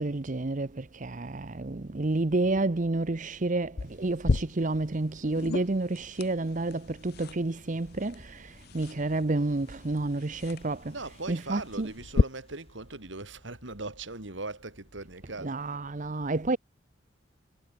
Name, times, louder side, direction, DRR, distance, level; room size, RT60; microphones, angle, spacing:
voice 1, 0.0-11.9 15.2-16.6, right 2 dB, 40° right, 0.8 m, -30 dB
sound 1, 3.8-12.2, left 3 dB, 55° left, 0.6 m, -34 dB
sound 2, 7.8-15.4, left 1 dB, 30° left, 6.1 m, -58 dB
voice 2, 10.9-15.6, right 2 dB, 70° right, 3.0 m, -39 dB
head